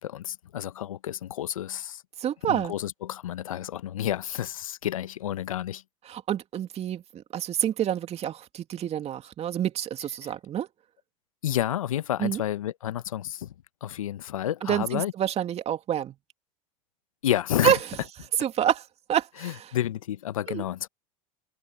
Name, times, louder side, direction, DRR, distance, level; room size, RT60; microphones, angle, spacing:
voice 1, 0.0-2.0 2.5-5.8 11.4-13.5 13.8-15.1 17.2-17.8 19.4-20.9, left 11 dB, 80° left, 1.0 m, -30 dB
voice 2, 2.2-2.7 6.1-10.7 12.2-12.4 14.6-16.2 17.6-17.8 18.4-18.8 19.1-19.7 20.5-20.6, right 10 dB, 40° right, 2.5 m, -28 dB
hypercardioid pair, 85°, 17 cm